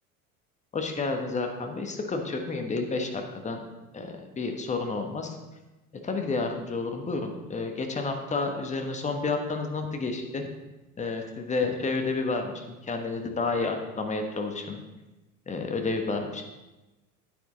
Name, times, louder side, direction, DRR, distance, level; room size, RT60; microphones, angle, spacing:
voice 1, 0.7-3.6 3.9-5.4 6.0-10.5 11.0-14.8 15.5-16.4, left 3 dB, 15° left, 3 dB, 1.3 m, -30 dB
9.8 x 9.2 x 3.8 m, 1.1 s
figure-of-eight pair, 75°, 43 cm